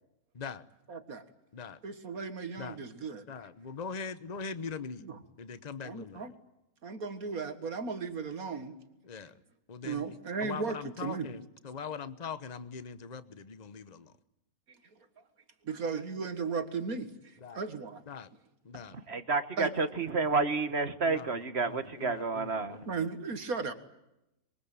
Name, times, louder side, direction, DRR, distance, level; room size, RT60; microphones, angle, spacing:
voice 1, 0.3-0.6 1.5-1.8 2.6-2.8 3.3-5.1 5.4-6.3 9.0-9.4 9.7-14.1 17.4-17.6 18.1-18.3 18.6-19.0 21.0-23.0, left 5 dB, 30° left, 13 dB, 1.1 m, -42 dB
voice 2, 0.9-1.2 1.8-3.3 5.0-5.1 5.8-6.3 6.8-8.8 9.8-11.3 15.6-18.0 19.6-19.7 22.9-23.7, right 5 dB, 75° right, 9 dB, 2.1 m, -36 dB
voice 3, 18.9-22.8, right 4 dB, 45° right, 10 dB, 1.8 m, -30 dB
25.0 x 23.0 x 8.9 m, 0.89 s
omnidirectional pair, 1.5 m